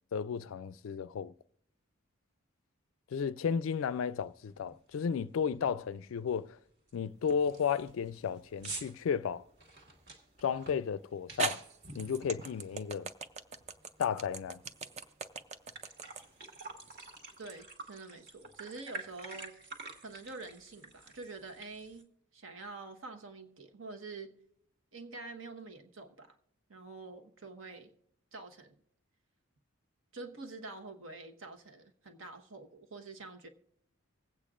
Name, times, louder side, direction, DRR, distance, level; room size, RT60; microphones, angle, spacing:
voice 1, 0.0-1.3 3.1-6.6 6.9-9.4 10.4-11.6 11.9-13.1 14.0-14.6, left 7 dB, 70° left, 0.3 m, -33 dB
sound 1, 3.9-4.0 4.4-4.7 5.0-5.1 5.5-5.9 6.3-6.4 6.9-7.0 7.3-13.2 13.6-14.9 15.2-15.3 15.6-22.0, right 3 dB, 50° right, 1.7 m, -49 dB
sound 2, 7.3-7.9 8.6-8.8 10.6-10.7 11.4-17.6, right 4 dB, 30° right, 0.5 m, -40 dB
voice 2, 17.4-19.6 20.0-24.3 24.9-26.4 26.7-27.9 28.3-28.7 30.1-33.5, right 3 dB, 70° right, 1.2 m, -47 dB
25.0 x 8.3 x 2.5 m
head